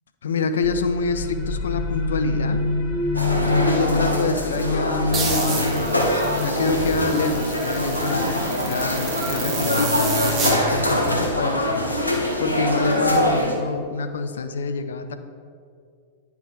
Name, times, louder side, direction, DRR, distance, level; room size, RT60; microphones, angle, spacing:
voice 1, 0.2-2.6 3.5-15.1, left 4 dB, 65° left, 9 dB, 0.4 m, -27 dB
sound 1, 0.6-12.0, left 3 dB, 45° left, 1.1 m, -28 dB
sound 2, 3.1-13.5, equal, 85° left, 0.8 m, -24 dB
sound 3, 5.1-10.6, right 2 dB, 20° right, 1.1 m, -29 dB
9.4 x 3.4 x 4.7 m, 2.2 s
figure-of-eight pair, 95°, 0 cm